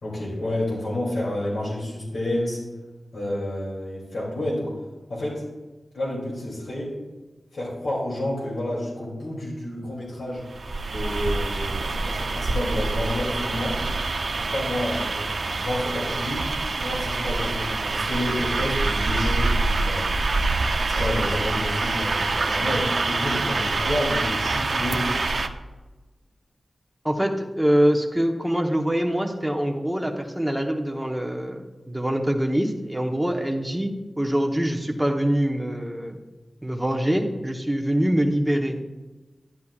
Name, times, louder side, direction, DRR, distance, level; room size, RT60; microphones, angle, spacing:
voice 1, 0.0-2.6 3.1-4.7 5.1-5.4 5.9-6.9 7.5-10.4 10.9-13.8 14.4-16.5 16.8-20.4 20.9-25.1, left 1 dB, 85° left, -6 dB, 2.8 m, -29 dB
sound 1, 10.4-25.5, right 3 dB, 65° right, 0.5 m, -26 dB
voice 2, 27.0-36.2 36.6-38.8, equal, 5° right, 2 dB, 1.0 m, -24 dB
11.0 x 10.5 x 2.4 m, 1.2 s
wide cardioid pair, 100°, 0 cm